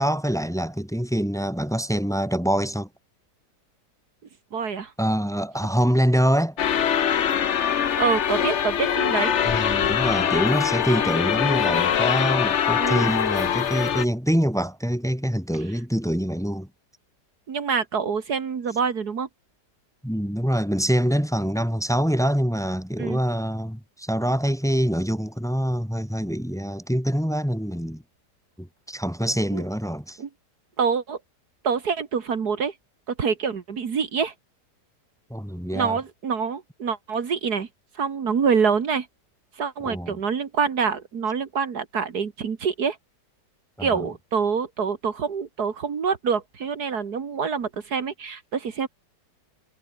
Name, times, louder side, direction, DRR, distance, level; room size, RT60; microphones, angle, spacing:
voice 1, 0.0-2.9 5.0-6.6 9.4-16.7 20.0-28.0 28.6-30.2 35.3-36.0 39.8-40.2 43.8-44.1, equal, ahead, 3.0 m, -25 dB
voice 2, 4.5-4.9 8.0-9.4 12.8-13.1 17.5-19.3 23.0-23.2 29.5-29.6 30.2-30.3 30.8-31.2 31.6-32.7 33.1-34.3 35.7-37.7 38.0-39.1 39.6-43.0 43.8-48.9, right 6 dB, 70° right, 2.2 m, -26 dB
sound 1, 6.6-14.0, left 8 dB, 50° left, 1.1 m, -23 dB
omnidirectional pair, 1.8 m